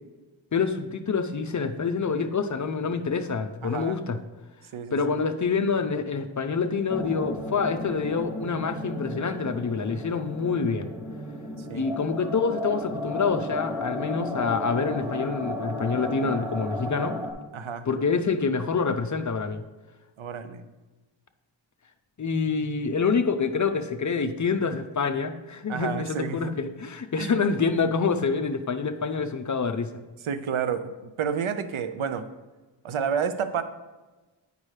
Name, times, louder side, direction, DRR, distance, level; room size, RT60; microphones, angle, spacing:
voice 1, 0.5-4.2 4.9-10.9 11.7-17.2 17.9-19.6 22.2-29.9, left 5 dB, 40° left, 8 dB, 0.5 m, -26 dB
voice 2, 3.6-4.0 4.7-5.0 11.7-11.8 17.5-17.8 20.2-20.6 25.7-26.4 27.2-27.4 30.2-30.9 31.2-32.3 32.8-33.6, right 7 dB, 85° right, 10 dB, 0.7 m, -29 dB
sound 1, 6.9-17.3, left 1 dB, 5° right, 0.8 m, -34 dB
8.8 x 5.3 x 3.2 m, 1.2 s
wide cardioid pair, 105°, 47 cm